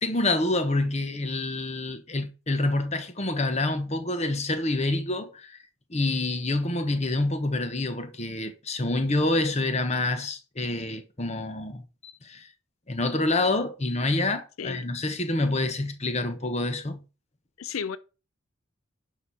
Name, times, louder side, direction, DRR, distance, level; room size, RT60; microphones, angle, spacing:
voice 1, 0.0-5.6 5.9-12.5 12.9-17.0, left 2 dB, 35° left, 1.2 m, -27 dB
voice 2, 17.6-18.0, left 6 dB, 90° left, 0.6 m, -33 dB
11.0 x 4.0 x 5.5 m
head